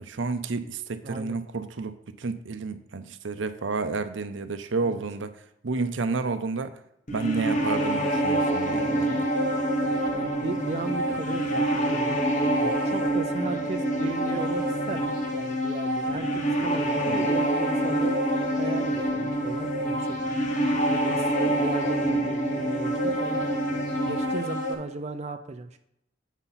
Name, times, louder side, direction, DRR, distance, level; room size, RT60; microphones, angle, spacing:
voice 1, 0.0-5.3 5.6-6.8 7.1-9.3 17.1-17.2, right 4 dB, 80° right, 10 dB, 0.6 m, -30 dB
voice 2, 1.0-1.4 4.8-5.0 10.1-12.2 12.6-18.2 18.5-20.2 21.0-23.5 24.1-25.8, right 3 dB, 35° right, 6 dB, 0.5 m, -36 dB
sound 1, 7.1-24.8, right 1 dB, 40° left, 1.2 m, -26 dB
8.1 x 4.1 x 5.7 m, 0.77 s
head